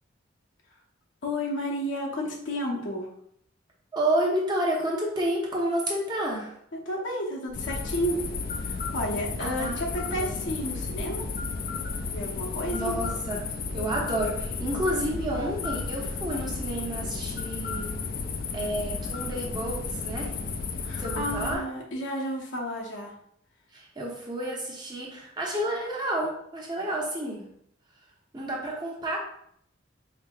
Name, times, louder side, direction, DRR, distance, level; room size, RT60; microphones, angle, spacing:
voice 1, 1.2-3.1 6.7-8.2 8.6-11.3 12.1-13.0 20.8-23.1, equal, 75° left, -2 dB, 0.9 m, -32 dB
voice 2, 3.9-6.5 9.4-10.5 12.7-13.4 13.7-17.9 18.5-20.3 21.0-21.6 23.7-27.5 28.3-29.2, right 1 dB, 25° right, -3 dB, 0.9 m, -30 dB
sound 1, 7.5-21.6, left 4 dB, 50° left, 0.4 m, -33 dB
4.7 x 2.8 x 2.3 m, 0.69 s
head